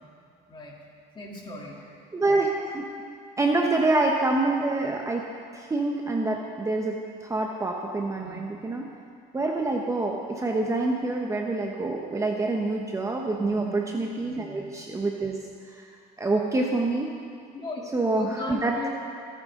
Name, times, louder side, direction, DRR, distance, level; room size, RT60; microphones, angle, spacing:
voice 1, 1.1-1.8 8.2-8.4 13.3-13.6 14.2-14.7 17.5-18.9, left 2 dB, 25° left, -3 dB, 3.0 m, -38 dB
voice 2, 2.1-2.9 3.4-5.2 5.5-8.9 9.3-15.4 15.7-15.9 16.2-17.1 17.9-18.9, right 2 dB, 15° right, 0 dB, 1.0 m, -26 dB
26.5 x 9.3 x 3.8 m, 2.2 s
cardioid pair, 120°, 17 cm